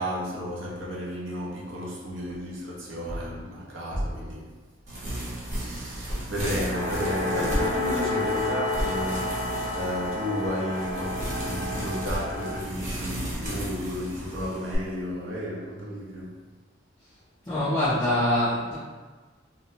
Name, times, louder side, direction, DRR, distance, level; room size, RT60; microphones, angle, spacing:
voice 1, 0.0-4.5 5.6-9.4 9.7-16.4, equal, 70° right, -4 dB, 0.6 m, -32 dB
sound 1, 4.9-14.8, right 1 dB, 40° right, 0.8 m, -34 dB
sound 2, 6.7-12.6, left 2 dB, 75° left, 0.4 m, -30 dB
voice 2, 17.5-18.8, left 1 dB, 20° left, -11 dB, 0.5 m, -24 dB
2.7 x 2.0 x 2.6 m, 1.3 s
head